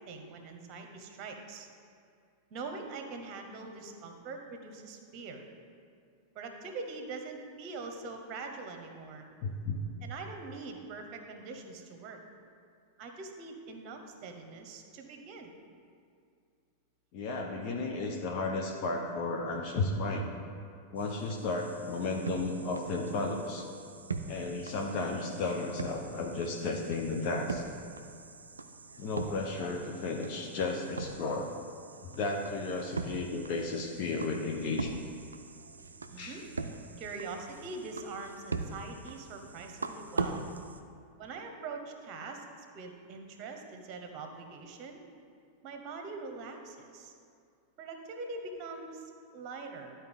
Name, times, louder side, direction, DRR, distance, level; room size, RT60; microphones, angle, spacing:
voice 1, 0.0-1.7 2.5-5.4 6.3-9.2 10.0-12.2 13.0-15.5 36.1-36.4 37.0-40.4 41.2-45.0 45.6-47.1 47.8-49.9, right 3 dB, 40° right, 5 dB, 1.0 m, -43 dB
voice 2, 9.4-9.8 17.1-20.3 20.9-23.7 24.3-27.6 29.0-31.5 32.0-34.9 36.2-36.4, left 3 dB, 45° left, 1 dB, 0.7 m, -33 dB
sound 1, 21.0-40.8, right 4 dB, 75° right, 0.4 m, -42 dB
12.0 x 4.3 x 3.6 m, 2.4 s
figure-of-eight pair, 90°, 0 cm